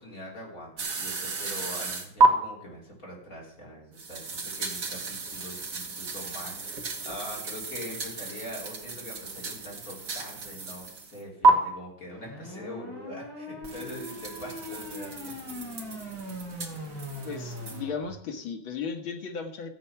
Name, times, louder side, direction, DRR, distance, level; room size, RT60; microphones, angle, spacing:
voice 1, 0.0-15.2, equal, 40° left, -2 dB, 4.1 m, -43 dB
sound 1, 0.8-2.3 4.0-11.2 11.4-11.5 13.6-17.8, right 3 dB, 45° right, 2.0 m, -31 dB
sound 2, 12.1-18.0, left 1 dB, 10° left, 6.4 m, -40 dB
voice 2, 17.2-19.7, left 5 dB, 75° left, 5 dB, 2.3 m, -35 dB
14.0 x 8.4 x 5.8 m, 0.69 s
omnidirectional pair, 2.2 m